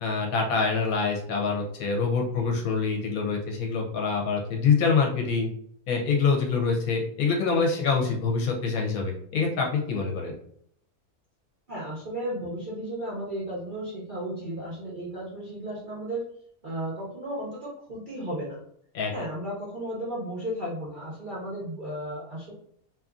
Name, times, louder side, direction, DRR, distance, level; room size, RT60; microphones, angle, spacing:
voice 1, 0.0-5.5 5.9-10.3 18.9-19.1, left 5 dB, 70° left, 1 dB, 1.0 m, -25 dB
voice 2, 11.7-16.2 16.6-18.6 19.1-22.5, right 1 dB, 50° right, -6 dB, 0.6 m, -34 dB
2.8 x 2.4 x 2.4 m, 0.66 s
omnidirectional pair, 1.7 m